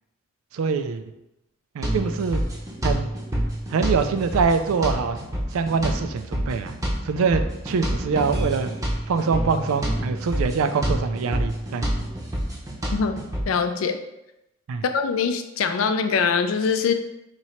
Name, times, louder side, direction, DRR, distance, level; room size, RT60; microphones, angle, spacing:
voice 1, 0.5-1.0 1.7-2.4 2.8-3.1 3.7-5.2 5.5-6.7 7.0-8.7 9.1-11.9 14.7-14.8, right 5 dB, 80° right, 9 dB, 0.4 m, -24 dB
sound 1, 1.8-13.4, equal, 15° right, 0.6 m, -28 dB
voice 2, 13.5-14.0 14.9-16.9, left 5 dB, 75° left, 8 dB, 0.4 m, -23 dB
3.0 x 2.8 x 4.3 m, 0.89 s
head